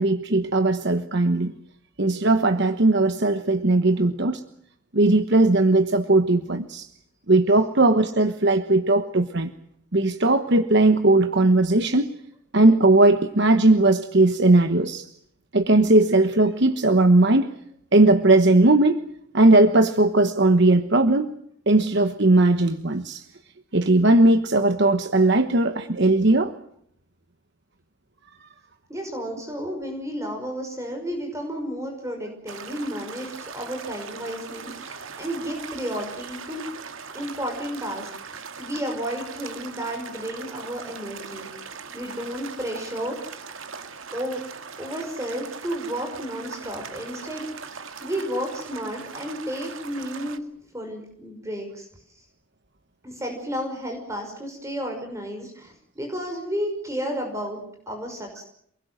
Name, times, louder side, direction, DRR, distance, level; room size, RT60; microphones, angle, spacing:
voice 1, 0.0-1.5 2.0-4.4 4.9-6.9 7.3-9.5 9.9-12.1 12.5-15.0 15.5-17.5 17.9-19.0 19.3-21.3 21.7-23.2 23.7-26.5, right 2 dB, 55° right, 9 dB, 1.2 m, -18 dB
voice 2, 28.9-36.7 37.1-41.7 41.9-43.4 44.1-44.4 44.8-50.4 50.7-52.2 53.0-58.4, equal, 15° right, 3 dB, 5.6 m, -32 dB
sound 1, 32.5-50.4, right 5 dB, 70° right, 2.0 m, -40 dB
28.5 x 21.0 x 7.8 m, 0.71 s
head